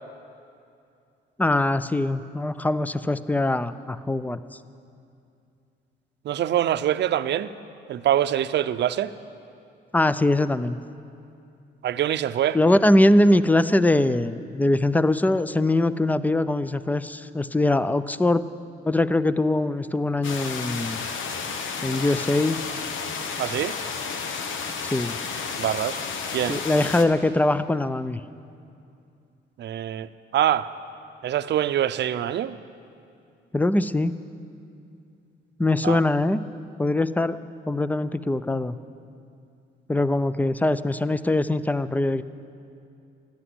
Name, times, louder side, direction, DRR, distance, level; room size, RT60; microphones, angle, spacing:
voice 1, 1.4-4.4 9.9-10.8 12.5-18.4 18.8-21.0 21.8-22.6 24.9-25.2 26.5-28.2 33.5-34.1 35.6-36.4 36.8-37.4 37.7-38.8 39.9-42.2, left 2 dB, 10° left, 14 dB, 0.5 m, -22 dB
voice 2, 6.2-7.5 7.9-9.1 11.8-12.6 23.4-23.7 25.6-26.0 26.3-26.6 29.6-30.7 31.2-32.5 35.8-36.0, right 11 dB, 60° right, 13 dB, 0.6 m, -24 dB
sound 1, 20.2-27.0, left 5 dB, 80° left, 1.2 m, -32 dB
14.0 x 10.5 x 9.8 m, 2.5 s
cardioid pair, 90°, 20 cm